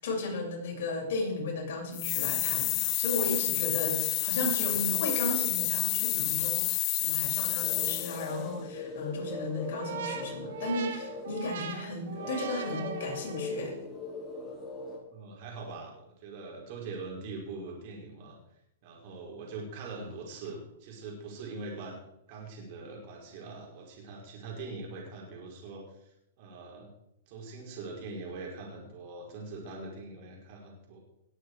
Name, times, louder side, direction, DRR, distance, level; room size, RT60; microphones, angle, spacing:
voice 1, 0.0-13.8, left 2 dB, 65° left, -2 dB, 6.5 m, -35 dB
sound 1, 1.9-8.4, left 21 dB, 35° left, 0.4 m, -29 dB
sound 2, 7.6-15.0, left 2 dB, 15° left, 4.7 m, -40 dB
sound 3, 9.7-13.6, right 6 dB, 70° right, 1.9 m, -40 dB
voice 2, 15.1-18.4 18.8-22.0 22.3-26.1 26.4-26.9 27.3-31.0, right 3 dB, 50° right, -1 dB, 5.1 m, -42 dB
19.5 x 8.5 x 4.9 m, 0.79 s
hypercardioid pair, 145°, 0 cm